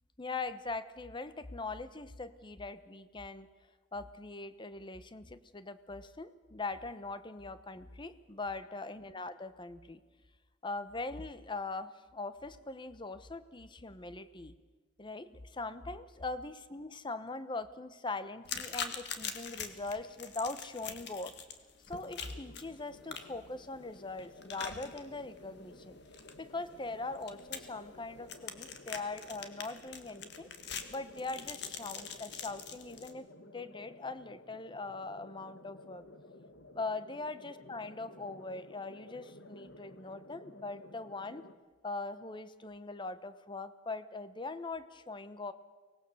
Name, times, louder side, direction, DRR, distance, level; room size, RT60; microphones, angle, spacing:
voice 1, 0.2-3.5 3.9-10.0 10.6-14.5 15.0-21.3 21.9-26.0 26.4-30.5 30.9-33.3 33.5-36.0 36.7-41.4 41.8-45.5, left 3 dB, 25° left, 13 dB, 0.9 m, -41 dB
sound 1, 18.4-33.1, left 7 dB, 65° left, 1.7 m, -44 dB
sound 2, 22.1-41.5, left 2 dB, 90° left, 1.6 m, -55 dB
24.0 x 19.0 x 7.0 m, 1.4 s
head